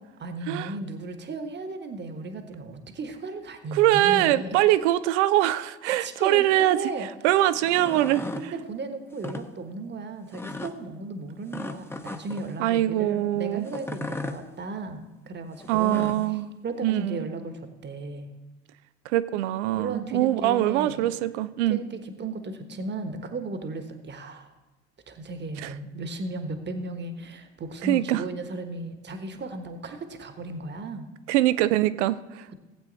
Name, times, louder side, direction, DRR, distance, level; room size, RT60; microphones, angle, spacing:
voice 1, 0.2-4.6 5.9-7.1 8.3-16.2 16.6-18.4 19.7-21.2 21.7-24.5 25.1-31.1, right 3 dB, 30° right, 7 dB, 1.3 m, -35 dB
voice 2, 3.7-6.8 7.2-8.2 12.6-13.7 15.7-16.5 16.8-17.3 19.1-21.8 25.6-25.7 27.8-28.2 31.3-32.4, right 14 dB, 75° right, 15 dB, 0.6 m, -23 dB
sound 1, 7.5-8.5 9.1-9.4 10.3-10.7 11.5-12.5 13.7-14.4 15.6-16.3, left 2 dB, 5° left, 0.9 m, -36 dB
16.0 x 8.2 x 4.0 m, 1.2 s
hypercardioid pair, 65°, 35 cm